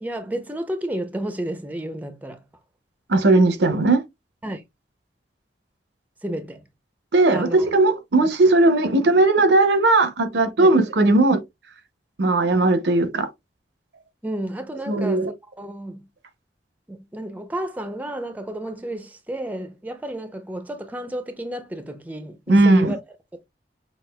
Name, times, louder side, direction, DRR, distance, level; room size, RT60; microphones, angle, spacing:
voice 1, 0.0-2.4 4.4-4.6 6.2-6.6 7.3-7.7 8.2-8.3 10.6-10.7 14.2-16.1 16.9-23.0, right 1 dB, 10° right, 0.5 m, -31 dB
voice 2, 3.1-4.0 7.1-11.4 12.2-13.3 14.9-15.3 22.5-22.9, right 2 dB, 80° right, 0.7 m, -17 dB
5.8 x 2.4 x 2.2 m
head